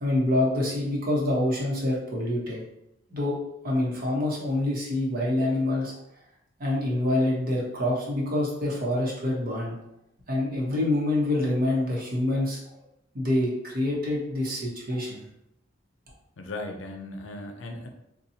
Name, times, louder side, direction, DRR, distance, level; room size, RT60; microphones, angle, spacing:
voice 1, 0.0-2.6 3.1-3.3 3.6-6.0 6.6-9.8 10.3-12.8 13.1-15.2, left 1 dB, 50° right, -3 dB, 1.0 m, -26 dB
voice 2, 16.4-17.9, left 2 dB, 70° left, 4 dB, 0.5 m, -37 dB
4.1 x 2.3 x 2.7 m, 0.81 s
head